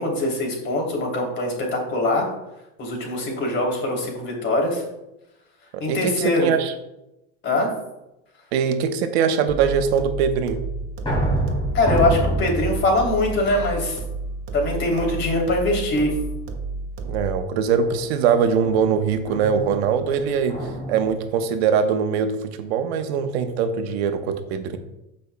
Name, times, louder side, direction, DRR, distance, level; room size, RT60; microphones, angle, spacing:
voice 1, 0.0-2.3 2.8-4.8 5.8-6.5 7.4-7.7 11.7-14.0 14.5-16.1, left 2 dB, 35° left, 0 dB, 3.1 m, -22 dB
voice 2, 5.7-6.1 6.4-6.7 8.5-10.6 17.1-20.6 20.9-24.8, right 6 dB, 80° right, 7 dB, 1.0 m, -22 dB
sound 1, 9.5-17.5, right 3 dB, 55° right, 1.5 m, -31 dB
sound 2, 10.6-14.4 14.9-15.5 15.9-16.3 17.8-21.2, right 1 dB, 15° left, 2.7 m, -28 dB
15.5 x 5.3 x 2.2 m, 0.91 s
supercardioid pair, 125°, 32 cm